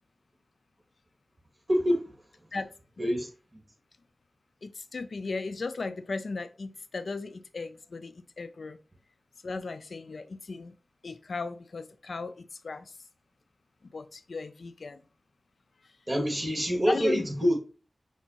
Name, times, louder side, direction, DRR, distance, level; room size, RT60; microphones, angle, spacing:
voice 1, 1.7-2.1 3.0-3.3 16.1-17.6, equal, 25° right, 2.0 m, -26 dB
voice 2, 4.6-8.8 9.4-10.7 11.0-12.9 13.9-15.0 16.9-17.3, left 3 dB, 80° left, 0.4 m, -36 dB
6.0 x 2.8 x 2.8 m
wide cardioid pair, 75°, 0 cm